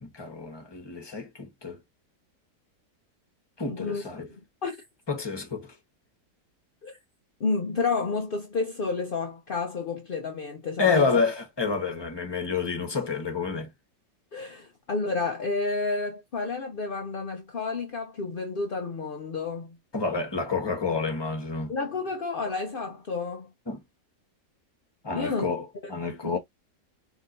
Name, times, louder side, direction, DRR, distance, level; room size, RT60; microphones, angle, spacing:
voice 1, 0.0-1.8 3.6-4.3 5.1-5.7 10.8-13.7 19.9-21.7 23.7-23.8 25.0-26.4, left 4 dB, 20° left, 1.0 m, -29 dB
voice 2, 3.7-4.0 4.3-4.8 6.8-7.0 7.4-11.1 14.3-19.8 21.7-23.5 25.1-25.5 26.2-26.4, left 4 dB, 55° left, 0.6 m, -30 dB
4.7 x 2.8 x 2.5 m
omnidirectional pair, 1.8 m